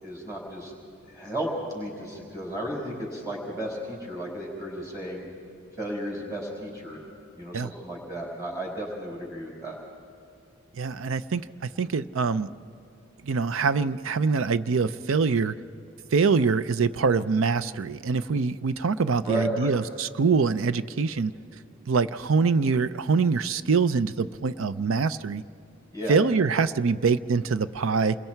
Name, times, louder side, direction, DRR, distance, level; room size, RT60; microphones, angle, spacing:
voice 1, 0.0-0.7 1.1-5.3 5.8-7.0 7.3-9.8 19.2-19.7 25.9-26.2, right 1 dB, 15° right, -4 dB, 4.9 m, -33 dB
voice 2, 10.8-12.5 13.2-15.5 16.1-21.3 21.9-25.4 26.1-28.2, right 5 dB, 75° right, 15 dB, 0.5 m, -24 dB
28.0 x 22.0 x 4.6 m, 2.7 s
head